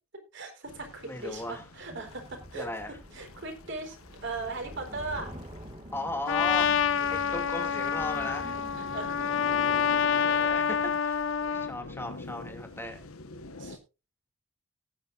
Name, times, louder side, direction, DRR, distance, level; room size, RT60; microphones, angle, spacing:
voice 1, 0.3-2.7 3.1-4.0 4.2-5.3 7.0-7.2 8.8-9.4 10.3-10.4 13.6-13.8, right 3 dB, 60° right, 4 dB, 4.1 m, -38 dB
sound 1, 0.7-13.8, left 2 dB, 90° left, 1.3 m, -46 dB
voice 2, 1.0-1.6 2.5-3.0 5.9-8.6 10.1-13.0, left 1 dB, 10° left, 4 dB, 2.5 m, -37 dB
sound 2, 1.9-11.0, right 1 dB, 30° right, 2.1 m, -47 dB
Trumpet, 6.3-11.7, left 7 dB, 65° left, 0.6 m, -27 dB
18.5 x 9.4 x 2.6 m, 0.28 s
head